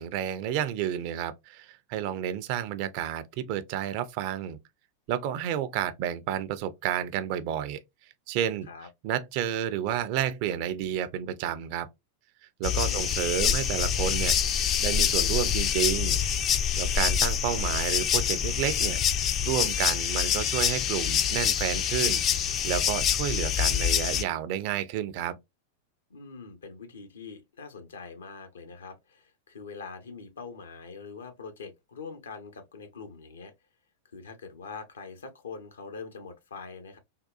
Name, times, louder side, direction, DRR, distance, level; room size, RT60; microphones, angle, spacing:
voice 1, 0.0-4.6 5.1-7.8 8.3-8.7 9.0-11.9 12.6-16.2 16.5-19.0 19.4-25.4, right 10 dB, 45° right, 0.4 m, -31 dB
sound 1, 12.6-24.2, left 8 dB, 30° left, 0.4 m, -26 dB
voice 2, 12.8-13.2 26.1-33.5 34.1-37.0, left 5 dB, 70° left, 0.7 m, -43 dB
3.6 x 2.3 x 2.3 m
figure-of-eight pair, 90°, 0 cm